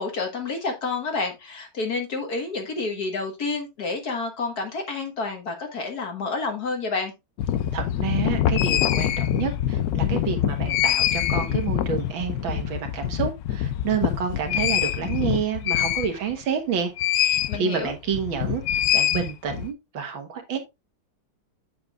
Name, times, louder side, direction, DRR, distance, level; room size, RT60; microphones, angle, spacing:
voice 1, 0.0-7.1 17.5-17.9, left 3 dB, 50° left, 1.9 m, -29 dB
sound 1, 7.4-16.4 17.0-17.6 17.9-19.7, left 11 dB, 85° left, 0.8 m, -24 dB
voice 2, 7.7-18.6 18.9-20.6, right 7 dB, 75° right, 2.1 m, -29 dB
7.7 x 7.4 x 2.4 m
omnidirectional pair, 2.2 m